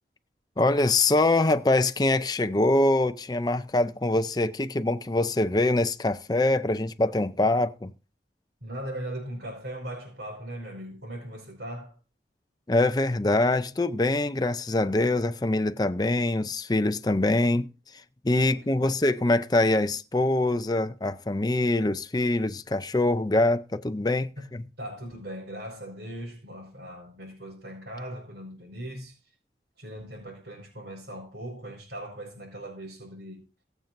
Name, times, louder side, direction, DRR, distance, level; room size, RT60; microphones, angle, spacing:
voice 1, 0.6-7.9 12.7-17.7 18.2-24.6, left 2 dB, 25° left, 0.5 m, -24 dB
voice 2, 8.6-12.0 18.4-19.0 24.8-29.2 29.8-33.4, right 1 dB, 80° right, 5.1 m, -39 dB
22.0 x 7.4 x 2.6 m
head